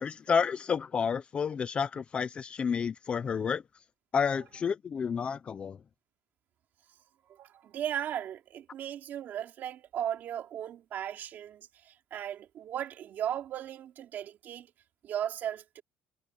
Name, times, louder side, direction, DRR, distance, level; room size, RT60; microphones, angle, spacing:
voice 1, 0.0-3.6 4.1-5.8, left 6 dB, 20° left, 0.5 m, -30 dB
voice 2, 7.3-14.7 15.0-15.8, right 10 dB, 40° right, 2.7 m, -36 dB
cardioid pair, 180°, 5 cm